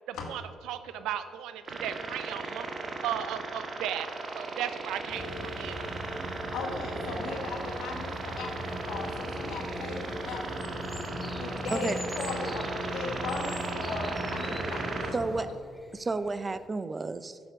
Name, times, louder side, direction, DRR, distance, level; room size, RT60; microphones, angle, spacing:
voice 1, 0.1-2.6 3.0-4.1 4.3-5.9, right 10 dB, 90° right, 11 dB, 0.6 m, -36 dB
sound 1, 1.6-15.1, right 3 dB, 45° right, 1.5 m, -37 dB
sound 2, 5.1-15.4, equal, 5° right, 2.7 m, -38 dB
voice 2, 6.5-10.8 11.4-15.2, left 4 dB, 85° left, 1 dB, 1.9 m, -38 dB
sound 3, 9.0-16.7, left 2 dB, 10° left, 0.8 m, -49 dB
voice 3, 15.1-15.5 15.9-17.4, right 3 dB, 30° right, 13 dB, 0.6 m, -31 dB
10.0 x 7.0 x 6.1 m, 2.2 s
cardioid pair, 90°, 0 cm